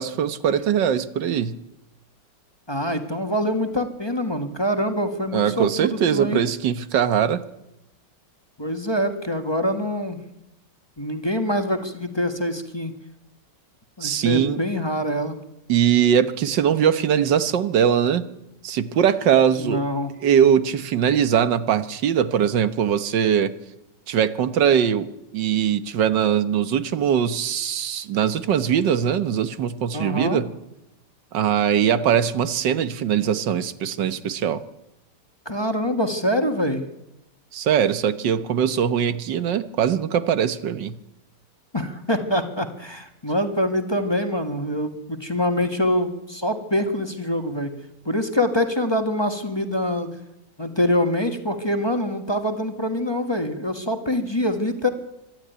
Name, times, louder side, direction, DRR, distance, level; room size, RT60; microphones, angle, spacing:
voice 1, 0.0-1.5 5.3-7.4 14.0-14.6 15.7-18.3 18.6-19.8 20.2-23.5 24.1-30.5 31.3-34.6 37.5-41.0, right 8 dB, 90° right, 13 dB, 1.7 m, -21 dB
voice 2, 2.7-6.4 8.6-10.2 11.0-12.9 14.0-15.4 19.6-20.1 29.9-30.4 35.4-36.8 41.7-47.7 48.0-50.1 50.6-54.9, left 1 dB, 15° left, 6 dB, 1.6 m, -25 dB
25.0 x 11.5 x 9.3 m, 0.88 s
omnidirectional pair, 1.9 m